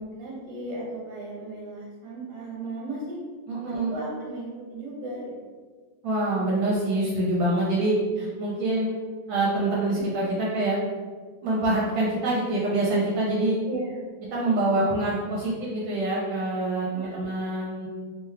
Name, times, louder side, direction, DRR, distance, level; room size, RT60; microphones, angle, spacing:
voice 1, 0.1-3.2 3.6-5.3 9.9-10.0 13.6-14.0 17.0-17.2, right 2 dB, 60° right, -4 dB, 1.3 m, -36 dB
voice 2, 3.5-3.9 6.0-8.9 9.3-10.8 11.4-13.6 14.3-17.9, right 2 dB, 75° right, -5 dB, 1.3 m, -25 dB
3.4 x 2.3 x 3.2 m, 1.5 s
omnidirectional pair, 2.2 m